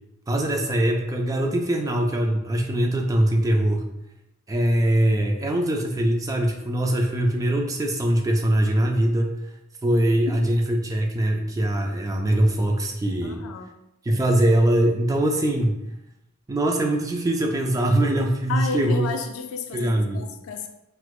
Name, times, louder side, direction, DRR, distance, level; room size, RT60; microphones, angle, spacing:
voice 1, 0.3-3.9 4.5-9.4 9.8-13.4 14.1-15.7 16.5-19.0 19.7-20.3, right 1 dB, 15° right, 2 dB, 0.3 m, -22 dB
voice 2, 13.2-13.7 18.5-20.7, left 5 dB, 70° left, 6 dB, 0.4 m, -32 dB
4.3 x 2.1 x 2.3 m, 0.89 s
head